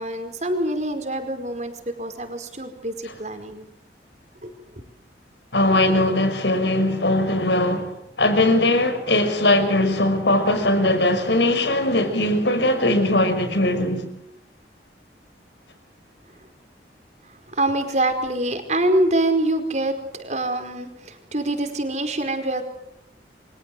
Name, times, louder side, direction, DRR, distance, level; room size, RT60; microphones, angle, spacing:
voice 1, 0.0-1.7 2.0-3.6 4.4-4.5 17.5-22.6, right 1 dB, 40° right, 4.8 m, -25 dB
voice 2, 5.5-14.1, left 1 dB, 85° left, 5.7 m, -20 dB
30.0 x 24.5 x 7.8 m
head